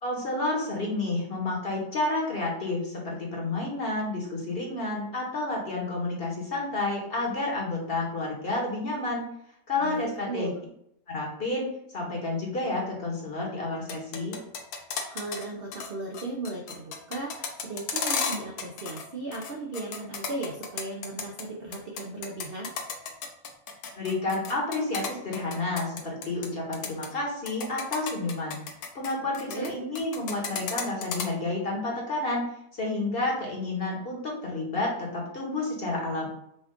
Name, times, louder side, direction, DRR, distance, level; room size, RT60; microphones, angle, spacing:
voice 1, 0.0-9.2 9.7-10.5 11.1-11.7 11.9-14.4 23.9-28.6 28.9-32.4 32.7-36.3, left 2 dB, 40° left, -2 dB, 1.1 m, -30 dB
voice 2, 9.8-10.5 15.1-22.7 29.5-29.7, right 2 dB, 60° right, -1 dB, 0.6 m, -36 dB
sound 1, 13.7-15.4 15.7-15.9 16.1-19.0 19.3-21.4 21.7-26.5 26.7-27.1 27.5-29.7 29.9-31.2, left 6 dB, 70° left, 1.2 m, -33 dB
5.3 x 2.3 x 3.6 m, 0.74 s
omnidirectional pair, 1.7 m